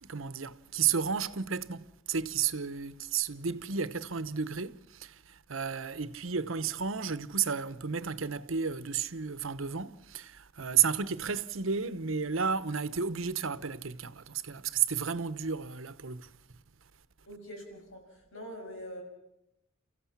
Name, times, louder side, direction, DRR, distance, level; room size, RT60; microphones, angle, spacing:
voice 1, 0.0-16.3, right 6 dB, 80° right, 1.0 m, -32 dB
voice 2, 17.3-19.0, equal, 90° left, 7.0 m, -44 dB
30.0 x 15.0 x 7.3 m
head